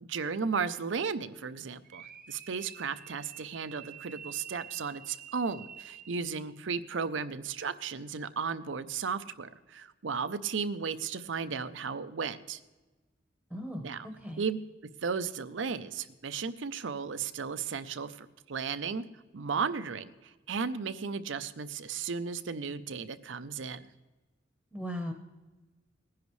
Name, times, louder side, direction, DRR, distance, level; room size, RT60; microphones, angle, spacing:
voice 1, 0.0-12.6 13.8-14.1 14.4-14.6 15.0-19.0 19.3-23.9, right 5 dB, 80° right, 12 dB, 0.6 m, -35 dB
sound 1, 1.8-6.6, right 8 dB, 45° right, 0.8 m, -49 dB
voice 2, 13.5-14.4 24.7-25.1, equal, 5° left, 3 dB, 1.0 m, -38 dB
19.5 x 10.5 x 3.2 m, 1.2 s
head